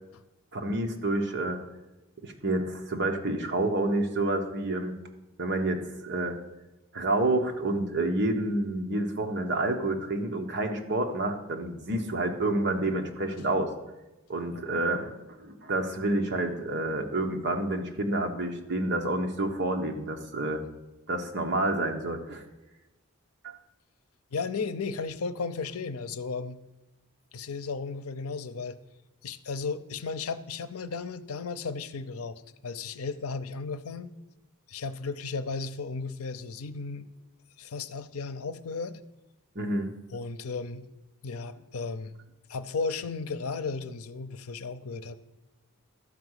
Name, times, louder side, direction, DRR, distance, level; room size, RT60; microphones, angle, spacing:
voice 1, 0.5-1.6 2.2-4.9 5.4-6.4 6.9-13.7 14.3-15.1 15.4-20.6 21.1-22.4 23.4-23.5 39.5-39.9, right 2 dB, 55° right, 4 dB, 1.2 m, -29 dB
voice 2, 24.3-26.6 27.3-28.8 29.2-34.1 34.7-37.1 37.6-39.0 40.1-40.9 41.2-42.1 42.5-45.2, left 4 dB, 90° left, 13 dB, 0.6 m, -35 dB
12.0 x 4.8 x 8.1 m, 1.0 s
head